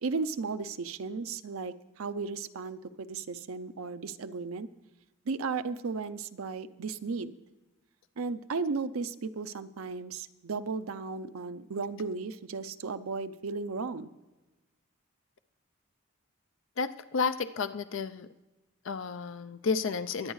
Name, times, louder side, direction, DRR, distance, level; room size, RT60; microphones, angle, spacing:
voice 1, 0.0-4.7 5.3-7.3 8.2-14.1, right 4 dB, 80° right, 12 dB, 0.6 m, -35 dB
voice 2, 16.8-18.3 18.8-20.3, left 5 dB, 65° left, 11 dB, 0.5 m, -31 dB
22.5 x 9.0 x 3.2 m, 1.1 s
head